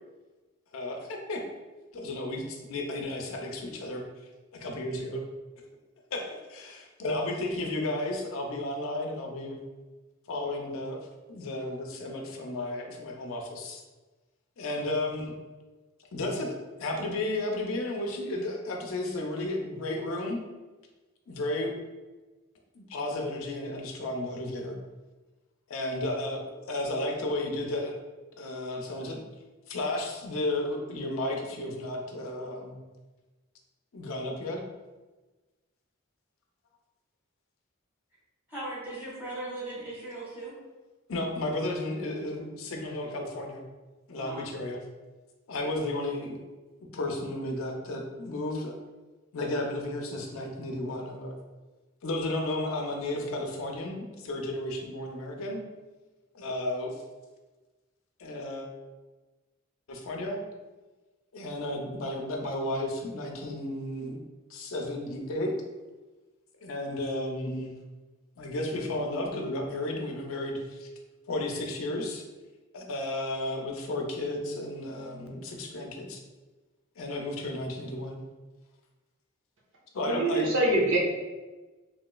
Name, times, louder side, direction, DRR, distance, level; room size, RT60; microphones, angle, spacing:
voice 1, 0.7-1.5 1.9-4.1 4.6-5.2 6.1-9.6 10.3-11.0 11.3-13.8 14.6-15.3 16.1-20.4 21.3-21.8 22.7-24.8 25.7-27.9 28.4-29.2 29.7-32.8 33.9-34.6 41.1-43.6 44.1-44.8 45.5-46.4 46.9-48.8 49.3-51.3 52.0-55.6 56.3-57.0 58.2-58.7 59.9-60.4 61.3-64.2 64.5-65.6 66.6-67.8 68.4-70.9 71.3-72.3 72.7-76.2 77.0-78.2 79.9-80.5, left 1 dB, 75° left, 1 dB, 0.5 m, -33 dB
voice 2, 38.5-40.5 44.1-44.5, right 2 dB, 10° right, -8 dB, 1.3 m, -38 dB
voice 3, 80.0-81.0, right 2 dB, 60° right, -3 dB, 0.8 m, -24 dB
3.0 x 2.9 x 2.2 m, 1.2 s
head